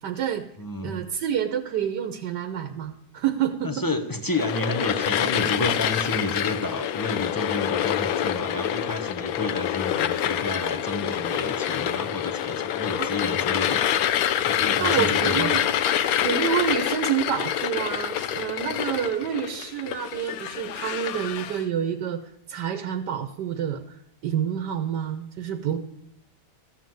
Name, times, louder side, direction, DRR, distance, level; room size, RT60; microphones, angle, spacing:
voice 1, 0.0-0.4 0.8-3.7 13.0-13.1 14.8-15.6 16.2-22.2 22.5-25.8, right 9 dB, 80° right, 8 dB, 1.4 m, -28 dB
voice 2, 0.6-1.0 3.6-14.0 14.5-15.6, left 2 dB, 25° left, 8 dB, 0.4 m, -30 dB
sound 1, 4.3-21.6, left 10 dB, 70° left, 1.0 m, -26 dB
14.0 x 7.4 x 7.7 m, 0.73 s
omnidirectional pair, 1.8 m